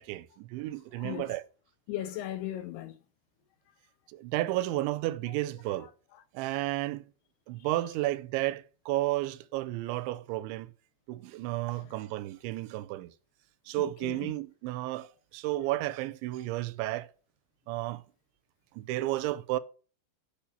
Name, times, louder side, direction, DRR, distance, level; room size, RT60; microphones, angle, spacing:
voice 1, 0.0-1.4 4.1-5.9 6.3-7.0 7.5-10.7 11.1-13.1 13.7-17.1 17.7-18.0 18.8-19.6, right 16 dB, 85° right, 3.0 m, -32 dB
voice 2, 0.9-1.3 1.9-3.0 4.7-4.8 5.8-6.2 7.6-7.7 11.7-12.0 13.7-14.3, left 13 dB, 80° left, 2.4 m, -39 dB
8.7 x 6.7 x 7.2 m
omnidirectional pair, 5.2 m